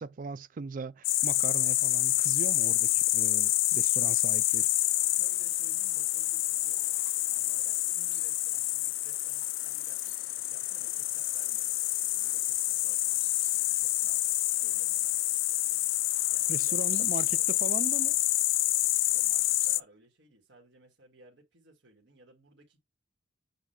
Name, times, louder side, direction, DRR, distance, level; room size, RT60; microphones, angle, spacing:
voice 1, 0.0-4.7 16.5-18.2, right 4 dB, 45° right, 0.4 m, -39 dB
sound 1, 1.0-19.8, left 17 dB, 85° left, 0.4 m, -28 dB
voice 2, 4.3-15.1 16.3-17.7 19.1-22.8, right 2 dB, 65° right, 1.8 m, -59 dB
7.1 x 2.6 x 5.7 m
head